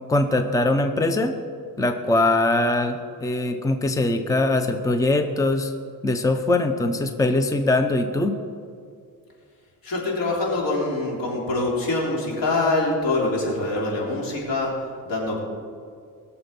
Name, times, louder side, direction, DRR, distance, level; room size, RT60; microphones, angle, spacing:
voice 1, 0.1-1.3 1.8-5.7 6.0-8.4, left 2 dB, 10° left, 7 dB, 0.6 m, -22 dB
voice 2, 9.8-14.7 15.0-15.4, left 2 dB, 85° left, -3 dB, 3.5 m, -24 dB
20.5 x 7.0 x 5.3 m, 2.2 s
wide cardioid pair, 150°, 34 cm